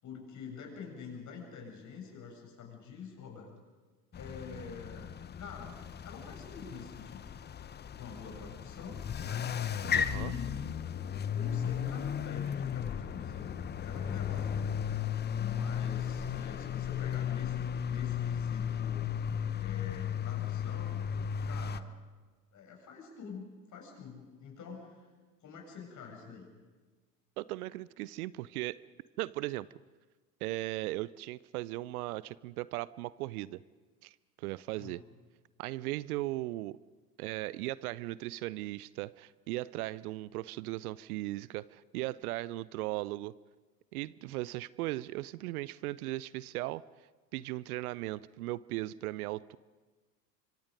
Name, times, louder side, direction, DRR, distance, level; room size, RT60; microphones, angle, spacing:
voice 1, 0.0-3.5 4.1-5.7 6.0-7.3 7.9-9.5 10.0-14.7 15.3-19.1 19.6-21.1 21.4-21.9 22.5-25.1 25.4-26.5 34.8-35.0, left 5 dB, 35° left, 1 dB, 7.4 m, -46 dB
sound 1, 4.1-21.8, left 8 dB, 20° left, 0.8 m, -35 dB
voice 2, 9.9-10.3 27.4-28.8 29.2-29.7 30.4-33.6 34.0-35.0 35.6-36.8 37.2-43.4 43.9-46.8 47.3-49.6, right 18 dB, 65° right, 20 dB, 0.7 m, -37 dB
25.5 x 24.5 x 5.3 m, 1.3 s
hypercardioid pair, 85°, 48 cm